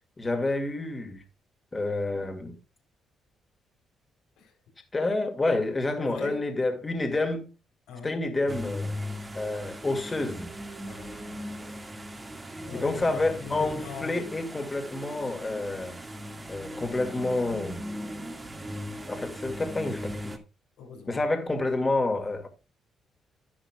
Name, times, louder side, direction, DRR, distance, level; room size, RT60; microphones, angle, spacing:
voice 1, 0.2-1.2 1.7-2.6 4.9-7.5 8.0-8.9 9.3-10.5 12.5-16.0 16.5-17.8 19.1-20.4 21.1-22.5, left 2 dB, 25° left, 2.3 m, -29 dB
voice 2, 6.0-6.4 7.9-8.2 10.8-11.5 12.6-14.2 20.8-21.2, left 4 dB, 90° left, 4.0 m, -41 dB
sound 1, 8.5-20.4, equal, 20° right, 2.0 m, -38 dB
11.0 x 11.0 x 2.4 m
cardioid pair, 90°, 0 cm